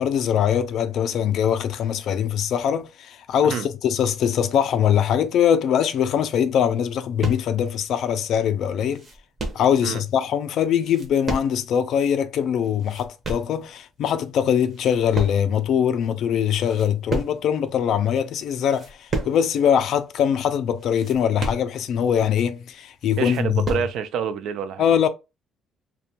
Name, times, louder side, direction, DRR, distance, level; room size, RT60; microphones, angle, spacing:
voice 1, 0.0-9.1 9.5-23.7 24.8-25.1, left 8 dB, 55° left, 0.3 m, -22 dB
sound 1, 7.2-7.6 8.2-8.3 8.6-9.7 10.7-11.8 12.1-12.2 12.6-13.6 14.2-14.4 14.7-15.7 16.0-16.1 16.5-17.6 18.1-18.2 18.6-19.5 19.8-19.9 20.2-20.3 20.8-22.1 22.5-22.6 22.9-24.0, right 2 dB, 25° right, 0.6 m, -32 dB
voice 2, 23.2-25.0, right 7 dB, 65° right, 0.3 m, -27 dB
2.6 x 2.2 x 2.8 m
cardioid pair, 170°, 0 cm